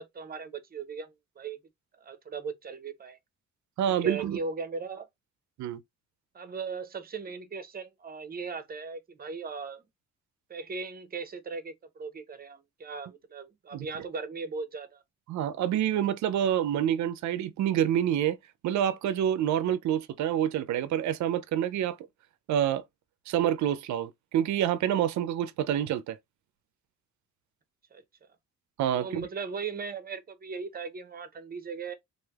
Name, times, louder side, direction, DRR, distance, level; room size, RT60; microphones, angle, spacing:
voice 1, 0.0-1.6 2.0-3.2 3.9-5.0 6.3-9.8 10.5-15.0 27.9-28.0 28.9-31.9, right 5 dB, 30° right, 0.7 m, -38 dB
voice 2, 3.8-4.4 5.6-5.8 13.7-13.9 15.3-18.4 18.6-22.0 22.5-22.8 23.3-26.2 28.8-29.3, right 10 dB, 70° right, 0.6 m, -27 dB
3.2 x 2.6 x 2.3 m
cardioid pair, 90°, 30 cm